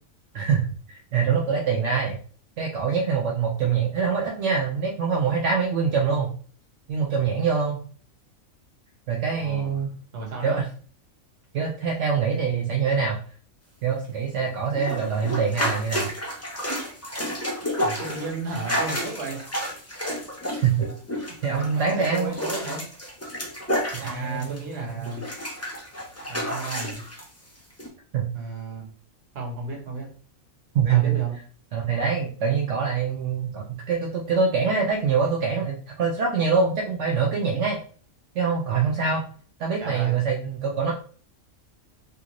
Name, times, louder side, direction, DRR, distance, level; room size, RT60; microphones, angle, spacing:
voice 1, 0.3-2.2 2.6-6.3 6.9-7.8 9.1-9.9 10.4-10.6 11.5-13.2 13.8-16.1 20.6-20.9 21.1-22.3 23.9-25.1 28.1-28.3 30.7-31.2 31.7-37.8 38.3-39.2 39.6-40.9, right 6 dB, 65° right, -1 dB, 0.9 m, -24 dB
voice 2, 9.4-9.8 10.1-10.6 17.8-19.4 21.5-22.8 24.0-25.2 26.3-27.0 28.3-28.9 29.3-30.1 30.9-31.4 39.8-40.2, right 2 dB, 50° right, -1 dB, 1.3 m, -34 dB
sound 1, 14.7-24.7 25.0-27.2 27.8-27.9, equal, 25° left, 0.3 m, -31 dB
3.5 x 2.5 x 2.9 m, 0.42 s
omnidirectional pair, 1.4 m